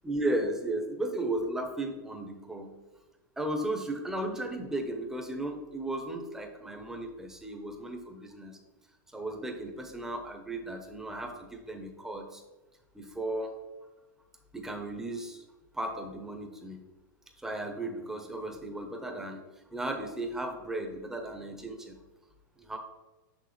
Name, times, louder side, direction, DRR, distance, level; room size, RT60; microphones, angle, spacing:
voice 1, 0.0-2.7 3.4-8.6 9.1-12.4 12.9-13.5 14.5-15.4 15.7-16.8 17.4-19.4 19.7-21.9 22.6-22.8, right 1 dB, 5° right, 4 dB, 0.7 m, -35 dB
6.3 x 6.3 x 3.1 m, 1.1 s
supercardioid pair, 155°, 11 cm